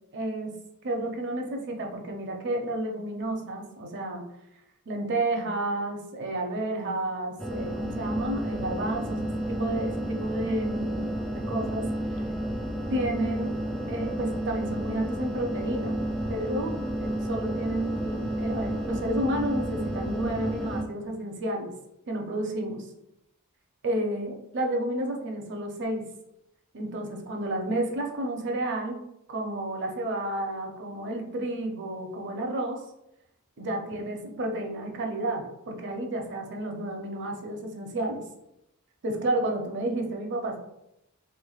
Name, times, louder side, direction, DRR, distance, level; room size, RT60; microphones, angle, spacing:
voice 1, 0.1-0.5 0.8-4.2 4.9-11.9 12.9-13.5 13.9-16.0 16.3-16.7 17.0-21.7 22.1-22.9 23.8-26.0 26.7-29.0 29.3-32.8 33.6-38.2 39.0-40.6, right 1 dB, 55° right, 2 dB, 0.6 m, -31 dB
sound 1, 7.4-20.8, right 1 dB, 5° left, 0.3 m, -31 dB
3.3 x 3.2 x 2.3 m, 0.85 s
head